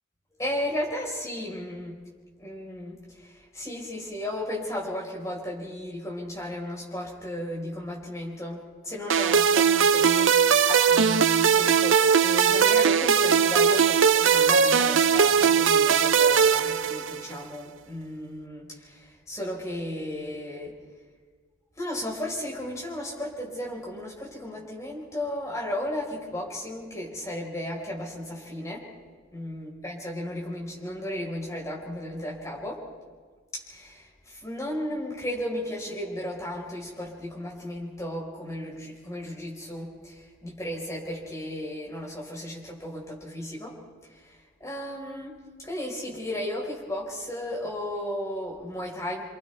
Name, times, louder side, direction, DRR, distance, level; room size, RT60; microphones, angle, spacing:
voice 1, 0.4-1.9 2.4-20.8 21.8-28.9 29.3-32.9 33.5-43.8 44.1-45.3 45.6-49.2, left 1 dB, 15° left, -3 dB, 4.6 m, -34 dB
sound 1, 9.1-17.4, right 7 dB, 70° right, 0.7 m, -20 dB
29.5 x 25.5 x 3.4 m, 1.5 s
head